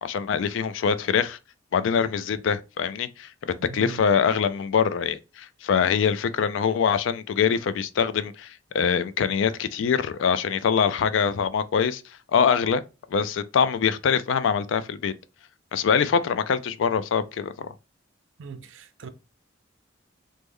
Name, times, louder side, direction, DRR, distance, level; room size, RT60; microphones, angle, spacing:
voice 1, 0.0-1.4 1.7-12.0 12.3-12.8 13.1-15.1 15.7-17.7, left 6 dB, 75° left, 0.3 m, -24 dB
voice 2, 3.6-4.0 18.4-19.1, right 5 dB, 75° right, 0.5 m, -40 dB
3.1 x 2.1 x 3.5 m
head